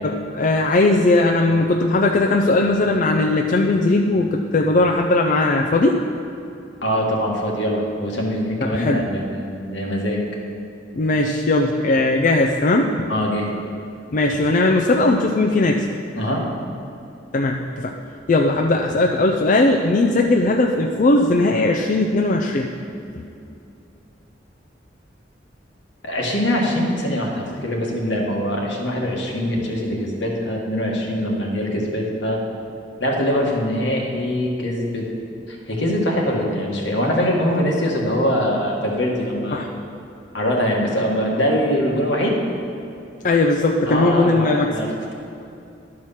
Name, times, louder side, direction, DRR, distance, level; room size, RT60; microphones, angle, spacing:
voice 1, 0.0-6.0 8.6-9.0 10.9-12.9 14.1-15.9 17.3-17.9 18.3-22.7 23.1-23.3 39.5-39.7 43.2-44.7, left 2 dB, 45° left, 2 dB, 0.4 m, -18 dB
voice 2, 6.8-10.3 13.1-13.5 16.2-16.4 26.0-32.4 33.0-35.1 35.5-39.7 40.3-42.4 43.9-45.1, equal, 75° left, -1 dB, 1.6 m, -23 dB
12.0 x 4.7 x 5.7 m, 2.7 s
head